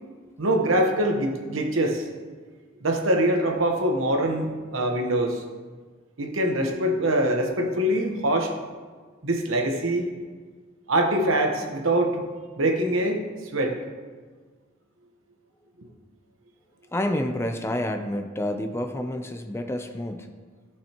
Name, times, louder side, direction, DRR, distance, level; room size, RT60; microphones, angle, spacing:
voice 1, 0.4-2.0 2.8-5.4 6.2-8.5 9.2-10.1 10.9-12.2 12.6-13.8, right 1 dB, 90° right, 2 dB, 1.1 m, -24 dB
voice 2, 16.9-20.3, left 1 dB, 15° left, 6 dB, 0.4 m, -29 dB
14.5 x 5.3 x 2.9 m, 1.5 s
head